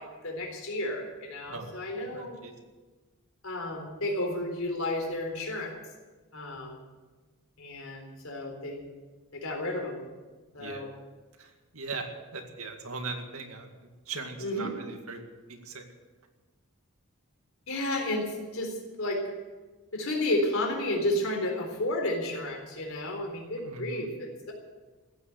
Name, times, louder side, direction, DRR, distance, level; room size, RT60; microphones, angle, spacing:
voice 1, 0.0-2.4 3.4-5.8 6.3-6.8 7.6-8.8 9.3-10.0 10.5-10.9 14.4-14.7 17.7-19.3 19.9-24.5, left 1 dB, 70° left, 2 dB, 3.9 m, -32 dB
voice 2, 2.1-2.5 10.6-10.8 11.4-13.7 14.1-15.2 15.5-15.8 23.6-24.1, right 3 dB, 80° right, 4 dB, 2.1 m, -39 dB
15.5 x 9.4 x 9.5 m, 1.3 s
head